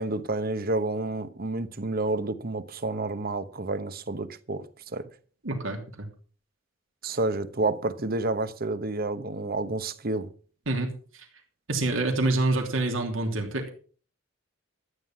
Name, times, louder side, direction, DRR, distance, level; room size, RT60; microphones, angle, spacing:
voice 1, 0.0-5.1 7.0-10.3, right 2 dB, 50° right, 1.0 m, -29 dB
voice 2, 5.4-6.1 10.7-11.3 11.7-13.7, right 2 dB, 80° right, 2.9 m, -27 dB
13.0 x 9.3 x 5.8 m
head